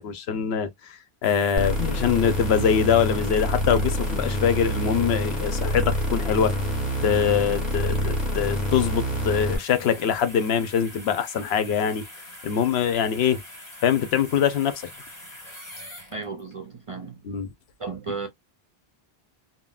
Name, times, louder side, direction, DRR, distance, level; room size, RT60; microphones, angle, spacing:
voice 1, 0.0-6.5 7.0-12.0 12.4-13.4 13.8-14.8 17.2-17.5, left 8 dB, 75° left, 0.8 m, -23 dB
sound 1, 1.2-16.5 17.0-17.2, left 1 dB, 45° left, 1.5 m, -44 dB
sound 2, 1.6-9.6, equal, ahead, 1.4 m, -26 dB
voice 2, 16.1-17.2 17.8-18.3, right 4 dB, 45° right, 0.4 m, -34 dB
3.6 x 2.1 x 2.3 m
omnidirectional pair, 1.1 m